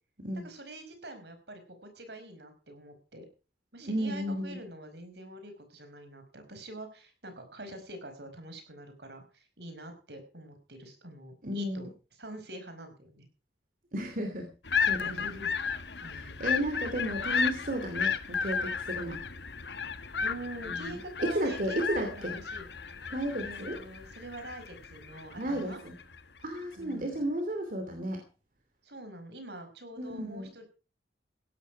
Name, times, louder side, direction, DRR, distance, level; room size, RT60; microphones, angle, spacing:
voice 1, 0.4-3.2 3.7-11.9 12.2-13.3 15.0-15.5 16.0-16.4 20.2-22.7 23.4-25.8 26.8-27.2 28.8-30.6, right 1 dB, 70° right, 7 dB, 5.0 m, -45 dB
voice 2, 3.8-4.6 11.4-11.9 13.9-14.5 14.9-15.3 16.1-19.2 20.6-21.0 21.2-22.3 23.1-23.8 25.4-25.9 26.4-28.2 30.0-30.5, right 1 dB, 50° right, 4 dB, 2.8 m, -33 dB
sound 1, 14.6-26.2, left 6 dB, 75° left, 1.4 m, -34 dB
16.5 x 12.0 x 4.7 m, 0.34 s
head